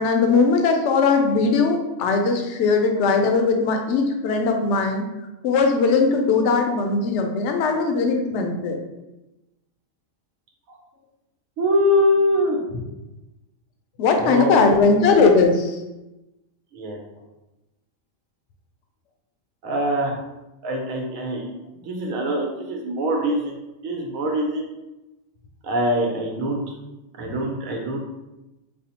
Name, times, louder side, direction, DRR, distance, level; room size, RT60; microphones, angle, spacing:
voice 1, 0.0-5.1 5.4-8.8 14.0-15.8, left 4 dB, 70° left, 4 dB, 0.8 m, -19 dB
voice 2, 11.6-12.6 14.2-14.7 16.7-17.0 19.6-20.2 20.6-21.5 21.8-23.5 23.8-24.6 25.6-26.7 27.2-28.0, equal, 90° right, 1 dB, 1.1 m, -23 dB
5.4 x 2.0 x 2.8 m, 0.99 s
omnidirectional pair, 1.4 m